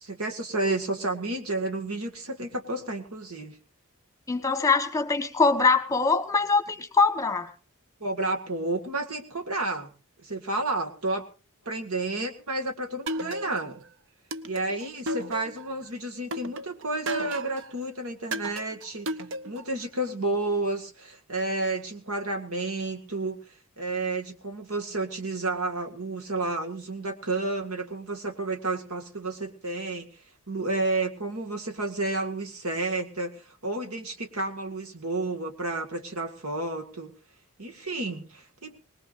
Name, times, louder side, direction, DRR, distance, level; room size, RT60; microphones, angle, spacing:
voice 1, 0.0-3.6 8.0-9.9 10.2-11.2 11.7-13.8 14.4-19.1 19.5-23.4 23.8-30.1 30.5-37.1 37.6-38.8, right 2 dB, 85° right, 4 dB, 2.0 m, -31 dB
voice 2, 4.3-7.5, left 4 dB, 15° left, 8 dB, 1.3 m, -23 dB
sound 1, 13.1-13.8 14.3-15.8 16.3-17.7 18.3-19.8, right 1 dB, 60° right, 0.7 m, -33 dB
21.5 x 19.5 x 2.6 m, 0.33 s
head